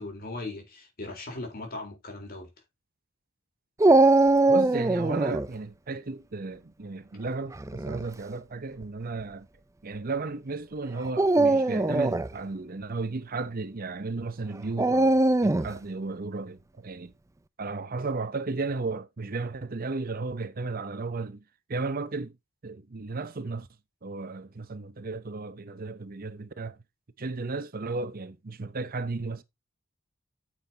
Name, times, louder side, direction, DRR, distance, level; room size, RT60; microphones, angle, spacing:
voice 1, 0.0-2.5, left 2 dB, 45° left, 3.9 m, -38 dB
Dog, 3.8-5.5 7.5-8.0 8.8-8.9 11.1-12.3 14.8-15.8, right 2 dB, 15° right, 0.4 m, -21 dB
voice 2, 4.5-9.5 9.8-17.1 17.6-21.4 21.7-22.4 22.6-23.7 24.0-26.8 27.2-29.4, right 3 dB, 45° right, 0.7 m, -34 dB
9.2 x 7.7 x 2.8 m
head